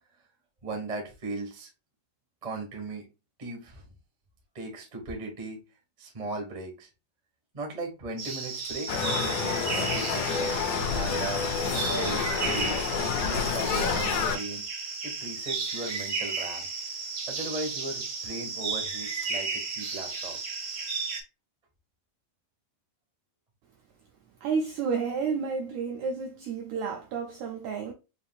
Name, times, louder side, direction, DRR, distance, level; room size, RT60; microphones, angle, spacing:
voice 1, 0.6-1.7 2.4-3.1 3.4-3.9 4.5-5.6 6.0-6.9 7.5-11.4 11.8-12.8 13.2-14.6 15.0-16.7 17.3-20.4, right 2 dB, 40° right, 0.5 m, -38 dB
sound 1, 8.2-21.2, right 4 dB, 60° right, 1.1 m, -34 dB
sound 2, 8.9-14.4, left 6 dB, 80° left, 2.0 m, -28 dB
voice 2, 24.4-27.9, right 5 dB, 85° right, 1.6 m, -31 dB
6.7 x 2.7 x 2.3 m
omnidirectional pair, 4.0 m